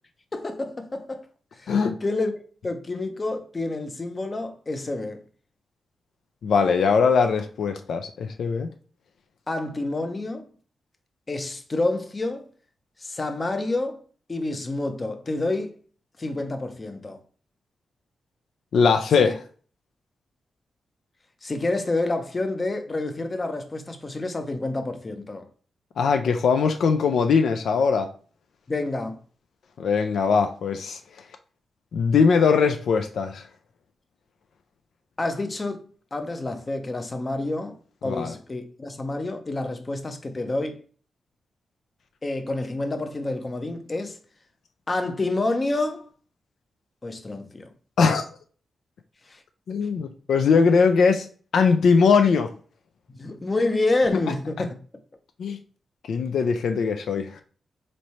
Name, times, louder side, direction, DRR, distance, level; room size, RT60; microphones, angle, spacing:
voice 1, 0.3-1.3 1.5-2.3 2.6-5.2 9.5-10.5 11.3-12.5 13.0-14.0 14.3-15.7 16.2-17.2 19.2-19.3 21.4-25.5 28.7-29.2 35.2-37.8 38.0-40.8 42.2-44.2 44.9-46.1 47.0-47.7 49.3-49.4 53.1-54.8, left 2 dB, 25° left, 0.5 m, -28 dB
voice 2, 6.4-8.7 18.7-19.4 26.0-28.1 29.8-31.0 31.9-33.4 38.0-38.3 48.0-48.2 49.7-51.3 51.5-52.5 55.4-55.6 56.1-57.4, left 5 dB, 75° left, 0.4 m, -21 dB
3.1 x 2.6 x 4.2 m
wide cardioid pair, 130°, 0 cm